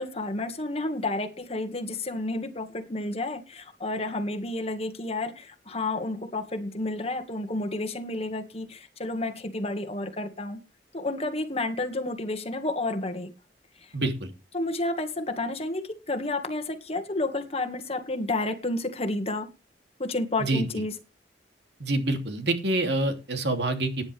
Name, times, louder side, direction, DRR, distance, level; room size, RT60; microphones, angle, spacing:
voice 1, 0.0-10.6 10.9-13.3 14.5-19.5 20.0-20.9, left 2 dB, 35° left, 2.0 m, -31 dB
voice 2, 13.9-14.3 20.4-20.8 21.8-24.0, right 2 dB, 75° right, 3.1 m, -27 dB
17.5 x 10.0 x 3.5 m
head